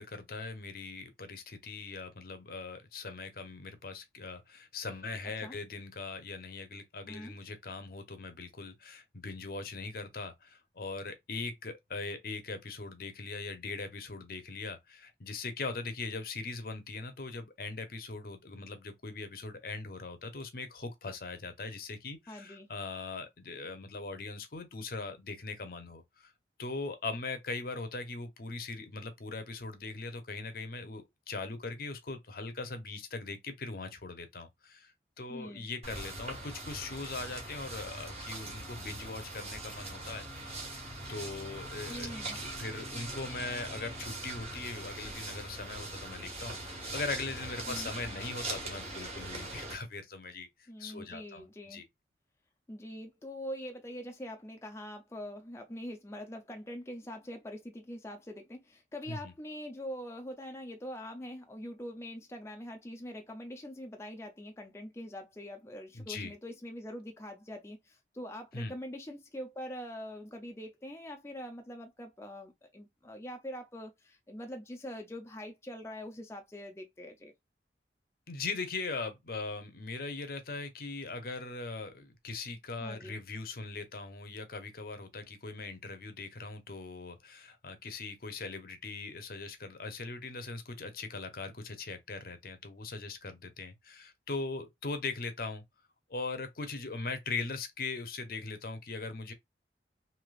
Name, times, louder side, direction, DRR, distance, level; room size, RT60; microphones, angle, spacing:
voice 1, 0.0-26.3 26.6-34.9 35.2-40.6 41.1-51.8 59.1-59.3 65.9-66.3 68.5-68.7 78.3-95.6 96.1-99.3, left 3 dB, 55° left, 0.7 m, -40 dB
voice 2, 22.3-22.7 35.3-35.7 41.9-42.4 47.7-47.9 50.7-51.8 52.7-77.3 82.8-83.2, equal, 15° left, 0.5 m, -43 dB
sound 1, 35.8-49.8, right 2 dB, 35° right, 1.4 m, -41 dB
3.2 x 2.9 x 2.3 m
head